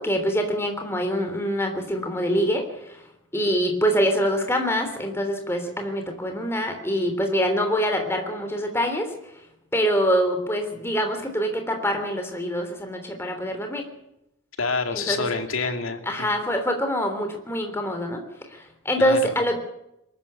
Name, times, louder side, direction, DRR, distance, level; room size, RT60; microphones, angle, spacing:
voice 1, 0.0-3.0 3.3-9.1 9.7-13.8 14.9-15.3 16.0-18.2 18.5-19.6, equal, 10° left, 5 dB, 3.2 m, -25 dB
voice 2, 14.6-16.3 19.0-19.3, left 4 dB, 85° left, 6 dB, 2.6 m, -27 dB
22.0 x 14.0 x 8.7 m, 0.83 s
head